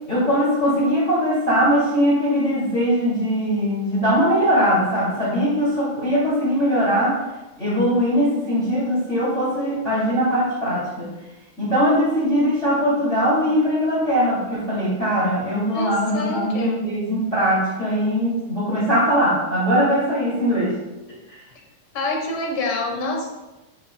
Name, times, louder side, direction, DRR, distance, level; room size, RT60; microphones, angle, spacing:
voice 1, 0.1-7.2 7.6-11.1 11.6-20.8 21.3-21.4, equal, 25° left, -8 dB, 2.5 m, -21 dB
voice 2, 15.7-16.9 21.9-23.3, left 2 dB, 60° left, 1 dB, 1.5 m, -27 dB
9.1 x 6.7 x 2.2 m, 1.0 s
omnidirectional pair, 3.5 m